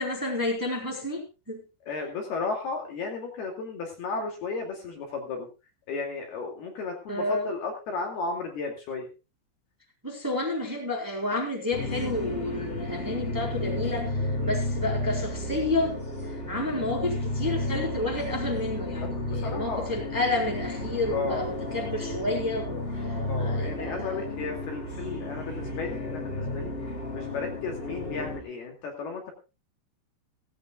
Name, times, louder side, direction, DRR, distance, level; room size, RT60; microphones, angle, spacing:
voice 1, 0.0-1.6 7.1-7.5 10.0-16.0 16.3-24.3, left 2 dB, 5° right, -1 dB, 3.5 m, -30 dB
voice 2, 1.9-5.5 5.9-9.1 14.4-14.6 19.0-19.9 21.1-21.4 23.3-26.7 27.1-29.3, left 4 dB, 55° left, 2 dB, 4.0 m, -34 dB
sound 1, 11.7-28.4, left 1 dB, 30° left, 1.0 m, -32 dB
17.5 x 16.5 x 2.3 m, 0.30 s
omnidirectional pair, 5.8 m